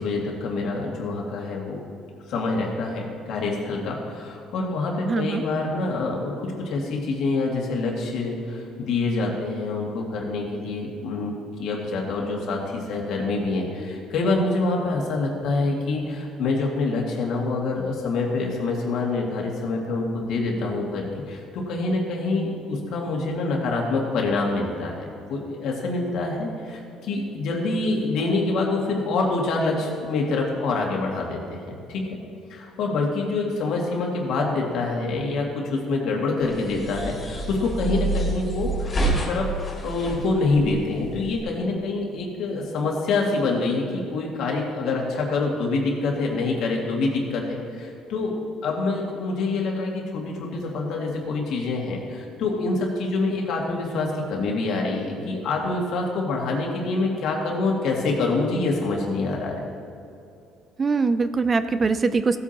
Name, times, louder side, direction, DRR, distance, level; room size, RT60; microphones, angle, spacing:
voice 1, 0.0-1.8 2.3-11.3 11.6-32.2 32.5-39.5 39.8-48.4 48.6-59.6, left 3 dB, 65° left, -1 dB, 2.0 m, -26 dB
voice 2, 5.1-5.4 60.8-62.4, right 4 dB, 25° right, 11 dB, 0.4 m, -22 dB
sound 1, 36.4-41.4, right 2 dB, 25° left, 2.3 m, -28 dB
15.0 x 8.3 x 2.9 m, 2.6 s
cardioid pair, 125°, 0 cm